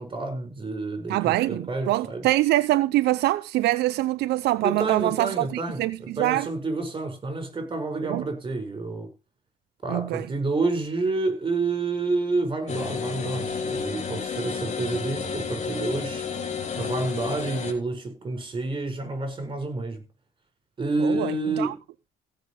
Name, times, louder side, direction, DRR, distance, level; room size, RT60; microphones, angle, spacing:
voice 1, 0.0-2.3 4.6-9.1 9.8-16.2 16.8-20.0 20.8-21.8, right 3 dB, 30° right, 6.9 m, -29 dB
voice 2, 1.1-6.5 8.1-8.2 9.9-10.2 21.0-21.7, right 16 dB, 75° right, 0.6 m, -24 dB
sound 1, 12.7-17.7, left 5 dB, 40° left, 3.2 m, -31 dB
16.5 x 6.7 x 5.2 m
cardioid pair, 110°, 17 cm